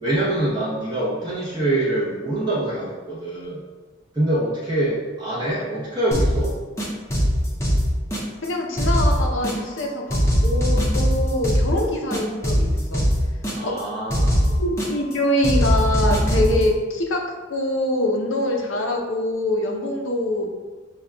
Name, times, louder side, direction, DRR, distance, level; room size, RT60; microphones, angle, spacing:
voice 1, 0.0-3.6 4.1-6.6 13.5-14.5, right 1 dB, 20° right, -10 dB, 0.8 m, -24 dB
sound 1, 6.1-6.5 6.8-8.5 8.8-9.8 10.1-11.8 12.1-13.8 14.1-15.1 15.4-16.6, equal, 15° left, 0.6 m, -21 dB
voice 2, 8.4-13.0 13.6-13.7 14.6-17.2 17.5-20.5, left 1 dB, 70° left, 1 dB, 0.6 m, -24 dB
6.6 x 2.3 x 2.2 m, 1.3 s
head